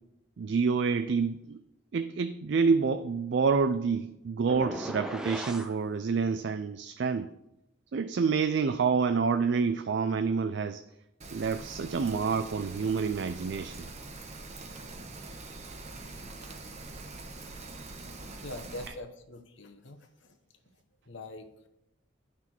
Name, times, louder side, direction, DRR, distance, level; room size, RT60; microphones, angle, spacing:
voice 1, 0.4-1.6 1.9-7.3 7.9-10.8 11.3-13.9, right 5 dB, 60° right, 0.4 m, -28 dB
sound 1, 4.5-5.7, equal, 5° right, 0.5 m, -37 dB
Rain, 11.2-18.9, right 2 dB, 35° right, 0.9 m, -44 dB
voice 2, 18.4-20.4 21.1-21.7, left 2 dB, 70° left, 1.0 m, -44 dB
9.8 x 5.9 x 4.5 m
head